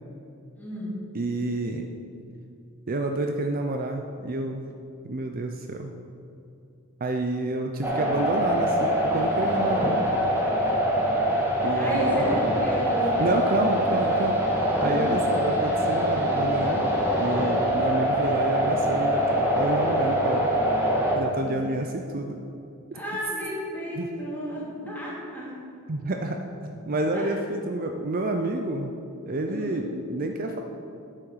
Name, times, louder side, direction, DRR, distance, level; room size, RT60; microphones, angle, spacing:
voice 1, 0.6-0.9 11.8-14.2 14.8-15.1 21.4-21.9 22.9-25.6 27.1-27.4 29.5-29.9, equal, 10° left, -7 dB, 2.9 m, -33 dB
voice 2, 1.1-1.9 2.9-4.6 5.0-5.9 7.0-10.3 11.6-12.2 13.2-14.4 14.8-16.9 17.1-20.5 21.2-22.4 22.9-23.0 24.0-24.1 24.8-24.9 25.9-28.9 29.2-30.6, right 2 dB, 40° right, 4 dB, 0.5 m, -29 dB
sound 1, 7.8-21.2, equal, 10° right, 1.6 m, -24 dB
8.7 x 7.7 x 6.4 m, 2.6 s
head